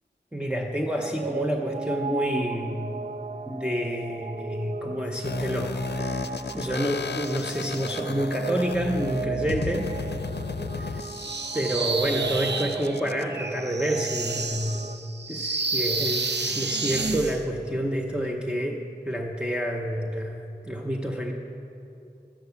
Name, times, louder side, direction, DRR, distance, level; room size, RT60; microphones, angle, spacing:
voice 1, 0.3-3.2 3.5-9.9 10.8-11.1 11.5-14.9 15.3-21.3, equal, 5° right, 0 dB, 0.7 m, -29 dB
sound 1, 0.8-15.0, right 5 dB, 45° right, 0.4 m, -37 dB
sound 2, 5.2-13.2, left 4 dB, 70° left, 0.6 m, -34 dB
sound 3, 11.1-17.4, right 3 dB, 75° right, 0.7 m, -30 dB
11.5 x 8.8 x 6.9 m, 2.7 s
wide cardioid pair, 65°, 18 cm